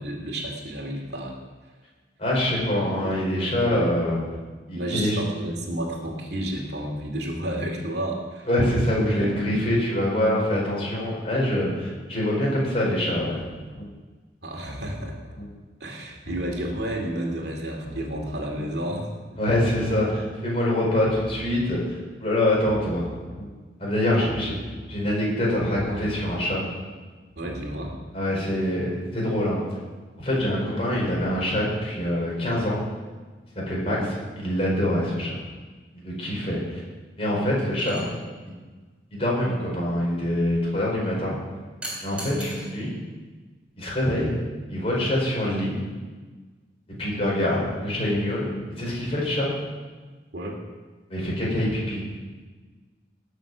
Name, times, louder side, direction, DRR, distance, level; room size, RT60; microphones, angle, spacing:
voice 1, 0.0-1.4 3.4-3.9 4.7-8.5 14.4-15.2 15.8-19.1 24.1-24.3 27.4-28.0 33.8-34.1 50.3-50.6, right 1 dB, 65° right, 1 dB, 2.4 m, -31 dB
voice 2, 2.2-4.2 4.7-5.2 8.5-13.4 19.4-23.1 23.8-24.5 24.9-26.6 28.1-29.6 30.2-32.8 33.5-34.0 34.4-35.4 35.9-36.8 37.2-38.0 39.1-41.4 42.0-42.9 43.8-44.3 44.7-45.8 47.0-48.5 48.8-49.5 51.1-52.0, left 1 dB, 35° left, -4 dB, 4.8 m, -25 dB
sound 1, 13.7-13.8 14.5-15.4 16.1-17.0 17.7-18.6 19.3-20.2 20.9-21.8 22.5-23.4 24.1-25.0 25.7-26.6 27.3-28.0, equal, 70° left, 4.1 m, -40 dB
sound 2, 37.8-38.1 41.8-42.7 44.1-44.3, right 1 dB, 5° right, 3.7 m, -37 dB
19.0 x 6.9 x 6.1 m, 1.4 s
head